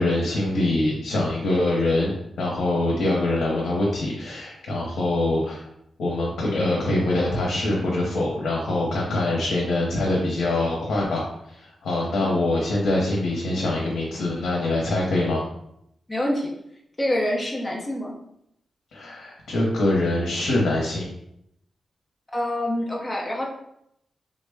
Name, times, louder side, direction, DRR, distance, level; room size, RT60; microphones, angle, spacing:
voice 1, 0.0-5.7 6.0-15.4 18.9-21.1, left 2 dB, 90° left, -3 dB, 0.7 m, -24 dB
voice 2, 16.1-16.5 17.0-18.2 22.3-23.4, left 1 dB, 15° left, -2 dB, 0.7 m, -26 dB
3.6 x 2.1 x 3.4 m, 0.76 s
wide cardioid pair, 145°, 0 cm